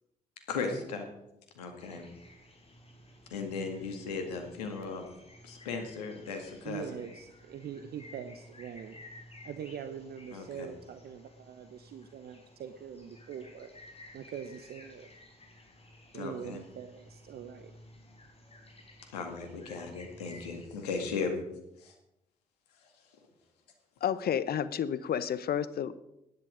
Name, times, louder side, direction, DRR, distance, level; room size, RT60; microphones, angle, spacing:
voice 1, 0.5-1.1 1.6-2.1 3.3-5.1 5.4-7.0 10.3-10.7 16.1-16.6 19.1-21.4 21.8-21.9, left 4 dB, 80° left, 5 dB, 2.0 m, -36 dB
sound 1, 1.8-20.7, left 1 dB, 30° left, 4.3 m, -54 dB
voice 2, 6.6-9.0 9.4-13.7 14.1-15.1 16.1-17.7, right 8 dB, 55° right, 9 dB, 0.9 m, -43 dB
voice 3, 24.0-26.0, left 9 dB, 50° left, 16 dB, 0.8 m, -31 dB
15.5 x 11.0 x 5.1 m, 0.86 s
hypercardioid pair, 45°, 20 cm